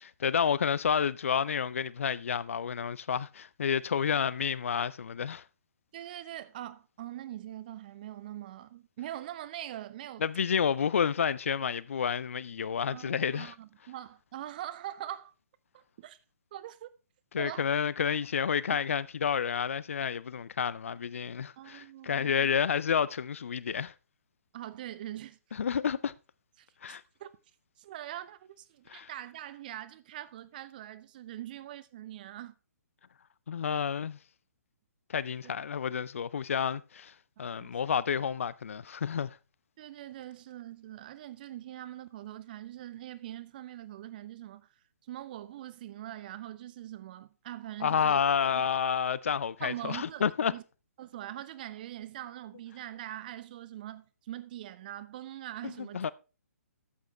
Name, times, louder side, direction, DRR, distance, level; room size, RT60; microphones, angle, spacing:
voice 1, 0.0-5.4 10.2-13.5 17.3-23.9 25.5-26.1 26.8-27.0 28.9-29.1 33.5-34.2 35.1-37.1 37.4-39.4 47.8-50.6 55.6-56.1, left 7 dB, 55° left, 0.4 m, -30 dB
voice 2, 5.9-10.3 12.9-15.3 15.7-16.2 16.5-16.9 17.4-17.7 18.7-18.8 21.6-22.5 24.5-25.4 26.6-27.3 27.8-32.5 35.4-35.5 37.4-37.7 39.8-44.7 45.1-48.2 49.6-50.6 51.0-56.0, right 13 dB, 35° right, 0.6 m, -43 dB
12.5 x 8.3 x 3.2 m
figure-of-eight pair, 130°, 8 cm